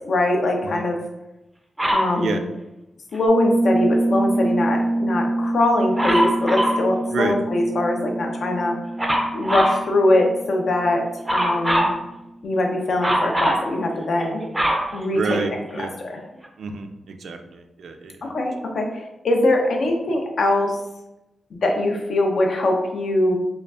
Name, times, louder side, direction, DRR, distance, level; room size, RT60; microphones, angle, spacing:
voice 1, 0.0-1.0 1.9-2.4 3.1-8.8 9.3-11.0 11.3-11.9 12.4-14.4 14.9-15.4 15.7-16.2 18.3-20.8 21.6-23.4, left 1 dB, 55° left, 2 dB, 0.6 m, -22 dB
Dog, 1.8-2.1 6.0-6.8 9.0-9.8 11.3-12.0 13.0-13.7 14.2-15.7 16.4-16.5, equal, 5° right, 0.5 m, -22 dB
Piano, 3.3-11.8, right 1 dB, 75° left, 1.4 m, -26 dB
voice 2, 15.1-15.5 15.8-15.9 16.6-18.3, right 4 dB, 75° right, 5 dB, 0.3 m, -28 dB
4.9 x 2.3 x 2.3 m, 0.93 s
wide cardioid pair, 175°, 0 cm